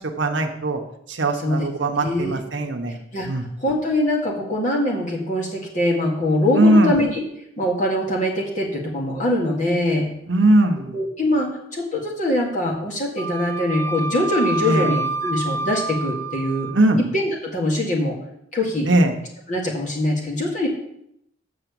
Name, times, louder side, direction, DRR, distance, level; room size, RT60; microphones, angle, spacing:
voice 1, 0.2-0.8 1.1-3.0 3.3-3.4 6.5-6.9 10.3-11.0 14.6-14.9 16.7-17.0 18.9-19.1, right 1 dB, 70° right, 5 dB, 1.0 m, -19 dB
voice 2, 1.3-1.7 2.0-2.4 3.1-3.3 3.6-7.2 7.6-10.1 10.9-16.7 17.1-18.2 18.5-18.9 19.5-20.7, left 1 dB, 40° left, -1 dB, 2.1 m, -23 dB
Wind instrument woodwind instrument, 13.2-16.8, right 3 dB, 15° left, 0.7 m, -28 dB
6.9 x 6.0 x 6.9 m, 0.77 s
head